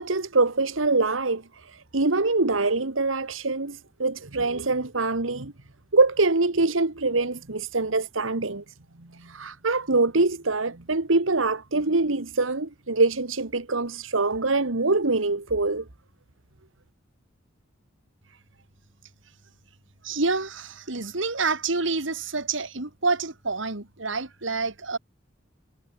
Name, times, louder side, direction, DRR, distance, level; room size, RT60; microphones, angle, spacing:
voice 1, 0.0-1.4 1.9-5.5 5.9-8.6 9.2-15.9, right 3 dB, 90° right, 1.7 m, -24 dB
voice 2, 20.0-25.0, right 3 dB, 70° right, 2.5 m, -28 dB
head